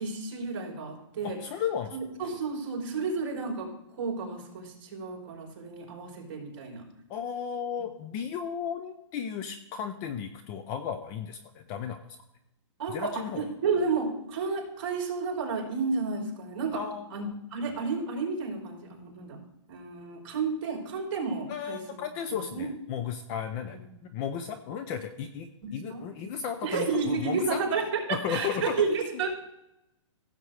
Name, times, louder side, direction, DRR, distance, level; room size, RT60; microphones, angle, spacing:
voice 1, 0.0-1.4 1.9-3.7 4.0-6.8 7.8-7.9 12.8-16.8 17.1-19.4 19.7-22.0 22.3-22.7 23.7-23.8 25.6-26.0 26.6-29.3, right 4 dB, 45° right, 0 dB, 3.9 m, -31 dB
voice 2, 1.2-2.0 7.1-12.0 12.9-13.5 16.7-17.3 21.5-27.6 28.1-28.8, left 7 dB, 20° left, 9 dB, 0.4 m, -34 dB
16.0 x 7.4 x 3.3 m, 0.87 s
hypercardioid pair, 165°, 16 cm